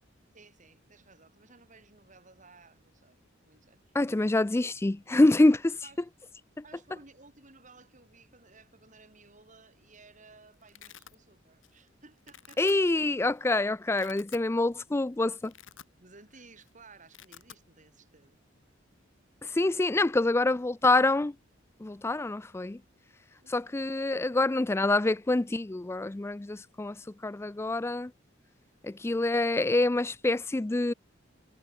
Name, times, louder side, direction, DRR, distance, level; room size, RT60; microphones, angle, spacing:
voice 1, 0.3-3.2 3.5-4.0 5.8-6.1 6.6-12.8 16.0-18.4 23.4-23.7, right 3 dB, 40° right, 5.3 m, -57 dB
voice 2, 3.9-5.8 12.6-15.5 19.5-21.3 21.8-22.8 23.5-27.0 27.2-28.1 28.8-30.9, left 2 dB, 15° left, 0.4 m, -26 dB
Domestic sounds home sounds, 9.7-10.0 10.3-11.2 11.6-11.9 12.2-12.7 13.4-13.5 13.8-14.5 14.9-15.0 15.3-16.3 16.5-16.7 17.0-17.6, left 9 dB, 75° left, 3.0 m, -51 dB
head